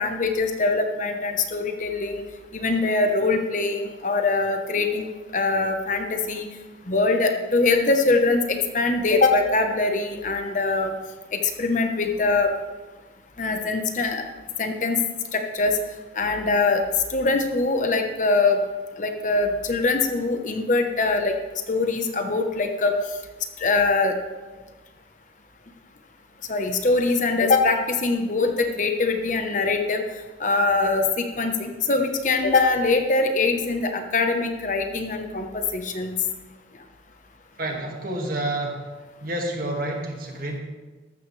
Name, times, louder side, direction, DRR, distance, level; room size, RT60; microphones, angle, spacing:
voice 1, 0.0-2.2 2.5-6.5 6.9-10.9 11.3-12.5 13.4-14.3 14.6-15.0 15.3-15.8 16.2-16.8 17.1-18.6 19.0-22.9 23.6-24.2 26.5-30.0 30.4-36.1, left 3 dB, 40° left, 5 dB, 1.0 m, -23 dB
voice 2, 37.6-38.8 39.2-40.6, right 1 dB, 50° right, 1 dB, 2.0 m, -29 dB
14.0 x 12.5 x 3.3 m, 1.3 s
head